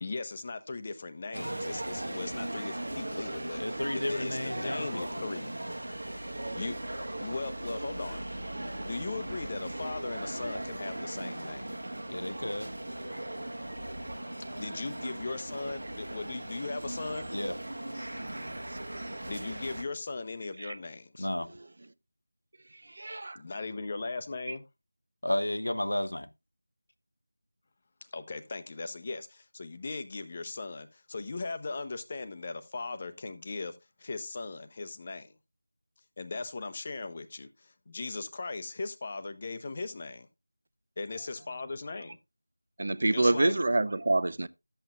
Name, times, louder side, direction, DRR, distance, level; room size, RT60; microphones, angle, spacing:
voice 1, 0.0-5.5 6.5-6.8 7.2-8.2 8.8-11.7 14.6-17.3 19.3-21.3 23.3-24.6 28.1-35.3 36.2-40.3 41.0-42.2 43.1-43.5, left 3 dB, 30° left, 0.8 m, -38 dB
sound 1, 1.3-19.8, right 1 dB, 65° right, 1.2 m, -38 dB
voice 2, 3.6-5.2 12.1-12.7 17.3-17.6 17.9-18.1 21.2-21.5 25.2-26.3, left 1 dB, 70° left, 0.8 m, -32 dB
voice 3, 23.0-23.4 24.5-24.6 42.8-44.5, right 2 dB, 50° right, 0.5 m, -27 dB
12.5 x 7.9 x 2.4 m
figure-of-eight pair, 170°, 0 cm